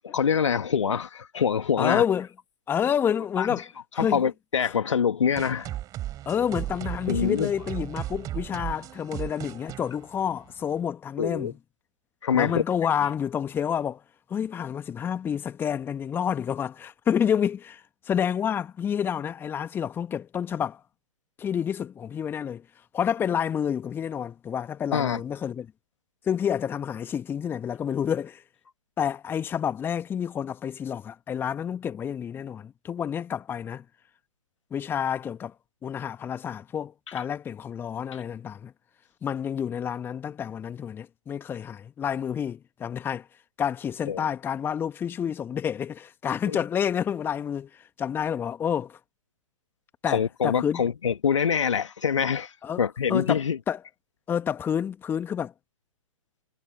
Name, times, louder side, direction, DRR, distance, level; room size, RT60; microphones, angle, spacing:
voice 1, 0.1-2.0 3.4-3.5 4.0-5.7 7.1-7.5 11.2-11.5 12.2-12.6 24.9-25.2 44.1-44.2 46.5-46.6 50.1-52.5 52.8-53.6, left 7 dB, 60° left, 2.2 m, -25 dB
voice 2, 1.8-2.3 2.7-3.7 3.9-4.2 4.6-4.7 6.3-11.6 12.3-14.0 14.3-20.8 21.4-22.6 22.9-25.7 26.3-28.4 29.0-33.8 34.7-35.5 35.8-38.7 39.2-43.3 43.6-49.0 50.0-50.8 52.6-52.8 53.1-53.8 54.3-55.5, left 8 dB, 10° left, 1.8 m, -29 dB
sound 1, 5.4-10.8, right 13 dB, 20° right, 4.1 m, -36 dB
figure-of-eight pair, 125°, 18 cm